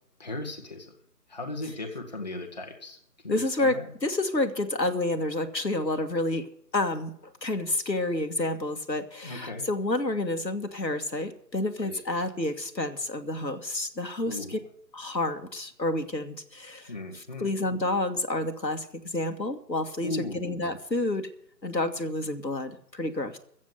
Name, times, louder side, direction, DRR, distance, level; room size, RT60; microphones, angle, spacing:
voice 1, 0.2-0.9 1.3-3.0 3.2-3.9 9.2-9.7 11.8-11.9 14.3-14.5 16.9-17.5 20.0-20.5, left 2 dB, 25° left, 2 dB, 1.3 m, -36 dB
voice 2, 3.3-6.5 6.7-14.6 14.9-21.3 21.6-23.4, left 2 dB, 90° left, 6 dB, 2.0 m, -29 dB
15.0 x 7.5 x 7.8 m, 0.66 s
figure-of-eight pair, 160°, 50 cm